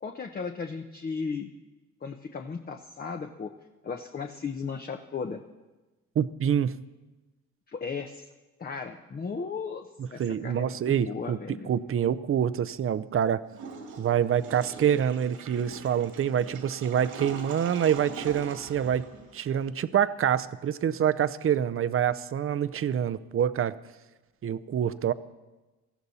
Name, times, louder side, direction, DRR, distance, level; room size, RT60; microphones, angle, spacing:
voice 1, 0.0-1.5 2.0-3.5 3.8-5.4 7.7-8.3 8.6-11.7, left 5 dB, 30° left, 5 dB, 0.9 m, -36 dB
voice 2, 6.2-6.8 10.2-13.4 14.0-19.1 19.3-23.7 24.4-25.1, right 9 dB, 45° right, 15 dB, 0.6 m, -26 dB
Water / Toilet flush, 13.5-19.7, right 5 dB, 85° right, 2.4 m, -42 dB
18.5 x 14.5 x 4.2 m, 1.2 s
cardioid pair, 90°, 30 cm